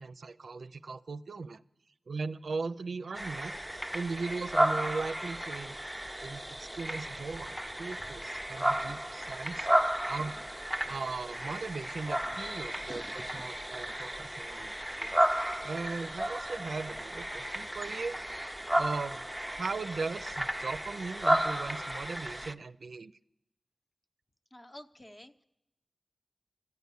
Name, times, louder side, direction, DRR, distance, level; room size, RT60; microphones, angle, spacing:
voice 1, 0.0-1.6 2.1-5.8 6.2-9.7 10.1-10.3 10.9-14.7 15.0-15.2 15.6-18.2 18.8-23.2, right 4 dB, 80° right, 12 dB, 0.4 m, -38 dB
sound 1, 3.1-22.5, right 1 dB, 5° right, 0.4 m, -33 dB
voice 2, 12.8-13.4 24.5-25.4, left 1 dB, 25° left, 8 dB, 0.7 m, -50 dB
13.5 x 9.3 x 8.1 m, 0.87 s
wide cardioid pair, 90°, 0 cm